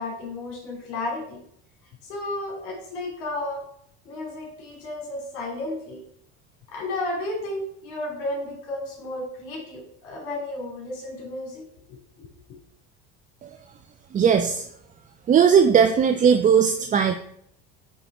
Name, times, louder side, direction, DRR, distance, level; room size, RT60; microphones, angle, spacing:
voice 1, 0.0-1.4 2.0-3.6 4.0-6.0 6.7-11.6 11.9-12.3, left 2 dB, 70° left, -3 dB, 2.9 m, -33 dB
voice 2, 14.1-14.6 15.3-17.2, right 7 dB, 25° right, 6 dB, 0.4 m, -18 dB
8.6 x 3.3 x 4.2 m, 0.70 s
supercardioid pair, 110°, 31 cm